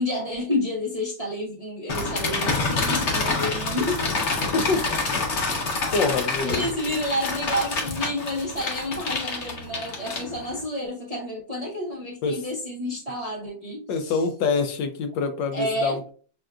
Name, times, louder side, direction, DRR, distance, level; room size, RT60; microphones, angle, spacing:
voice 1, 0.0-4.0 6.4-14.2 15.5-16.1, left 1 dB, 65° right, -4 dB, 0.3 m, -29 dB
sound 1, 1.9-10.6, left 3 dB, 50° left, 1.0 m, -27 dB
voice 2, 4.4-4.8 5.9-6.7 12.2-12.4 13.9-16.1, left 4 dB, 80° left, 8 dB, 1.3 m, -25 dB
6.3 x 2.4 x 2.2 m, 0.41 s
omnidirectional pair, 1.9 m